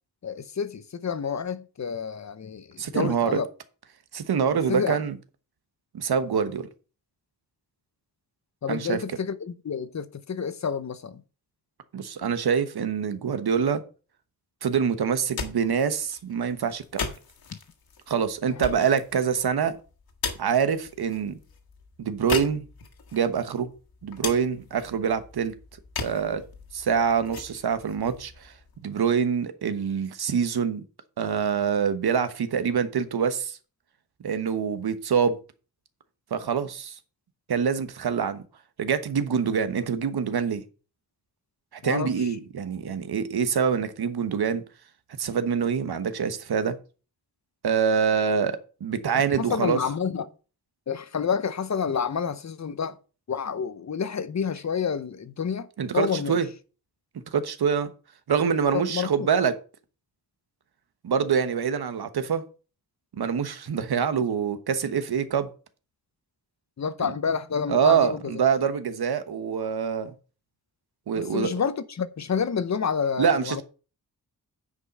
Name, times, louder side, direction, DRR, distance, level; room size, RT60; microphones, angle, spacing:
voice 1, 0.2-3.5 4.7-5.0 8.6-11.2 18.5-18.7 41.8-42.3 49.4-50.3 50.9-53.0 53.3-55.7 55.9-56.4 58.7-59.3 66.8-68.3 71.2-73.6, left 6 dB, 45° left, 0.8 m, -29 dB
voice 2, 2.8-3.4 4.1-5.2 5.9-6.7 8.7-9.0 11.9-13.8 14.6-17.0 18.1-19.8 20.4-21.4 22.0-22.6 23.1-23.7 24.0-25.5 26.0-26.4 26.7-28.5 28.8-30.8 31.2-33.6 34.2-35.4 36.3-37.0 37.5-38.4 38.8-40.6 41.8-44.6 45.2-46.8 47.6-49.8 55.8-56.5 57.3-57.9 58.3-59.5 61.0-62.4 63.2-65.5 67.0-67.1 67.7-70.1 71.1-71.5 73.2-73.6, right 7 dB, 85° right, 1.2 m, -25 dB
sound 1, 15.1-29.0, left 5 dB, 75° left, 1.8 m, -39 dB
9.8 x 5.3 x 5.4 m
wide cardioid pair, 155°, 37 cm